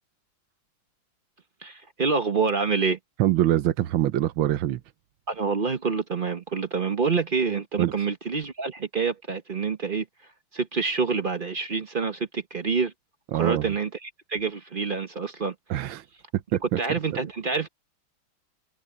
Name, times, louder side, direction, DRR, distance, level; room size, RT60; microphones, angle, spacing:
voice 1, 1.6-3.0 5.3-10.1 10.5-12.9 13.3-15.9 16.8-17.7, right 5 dB, 40° right, 0.7 m, -27 dB
voice 2, 3.2-4.8 7.8-7.9 13.3-13.6 15.7-16.0 16.5-16.6, right 13 dB, 80° right, 1.6 m, -23 dB
omnidirectional pair, 2.2 m